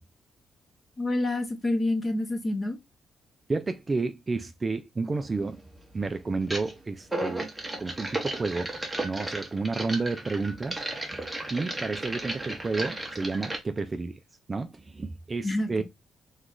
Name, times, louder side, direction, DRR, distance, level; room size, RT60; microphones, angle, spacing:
voice 1, 1.0-2.8 15.4-15.8, left 2 dB, 25° left, 0.8 m, -28 dB
voice 2, 3.5-5.6 5.9-7.5 7.8-8.7 9.0-10.8 11.1-11.2 11.5-14.2 14.5-15.8, right 3 dB, 25° right, 0.3 m, -31 dB
sound 1, 5.1-5.3 6.4-6.7 7.0-13.6, right 2 dB, 10° right, 0.7 m, -34 dB
3.1 x 2.3 x 3.6 m
cardioid pair, 145°, 0 cm